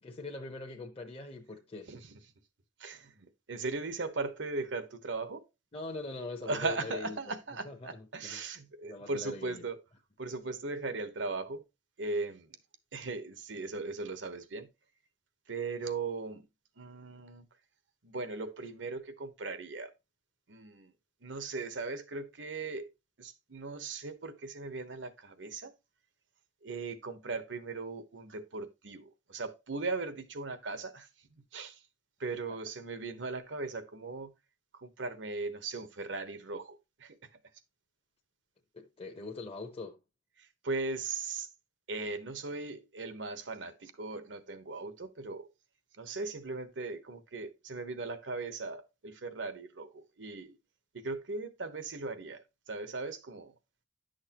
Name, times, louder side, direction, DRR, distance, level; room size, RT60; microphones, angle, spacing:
voice 1, 0.0-1.9 5.7-7.2 7.6-8.4 8.8-9.7 38.7-40.0, left 3 dB, 30° left, 0.8 m, -42 dB
voice 2, 2.8-5.4 6.4-9.8 10.2-11.6 12.0-12.6 12.9-14.7 15.5-16.5 16.8-17.5 18.0-19.9 20.5-20.9 21.2-22.9 23.2-25.7 26.6-31.1 31.5-31.8 32.2-34.3 34.7-37.2 40.4-41.5 41.9-45.5 46.0-50.6 50.9-53.5, right 3 dB, 80° right, 1.1 m, -38 dB
11.0 x 6.4 x 2.9 m
head